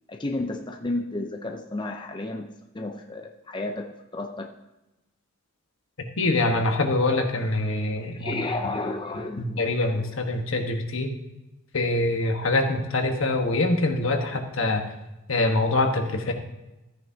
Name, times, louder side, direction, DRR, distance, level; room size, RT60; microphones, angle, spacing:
voice 1, 0.1-4.5 8.0-9.6, left 2 dB, 20° left, 3 dB, 0.6 m, -32 dB
voice 2, 6.2-8.5 9.4-11.1 11.7-14.8 15.3-16.3, left 2 dB, 75° left, 4 dB, 1.3 m, -24 dB
13.5 x 9.3 x 2.8 m, 0.99 s
head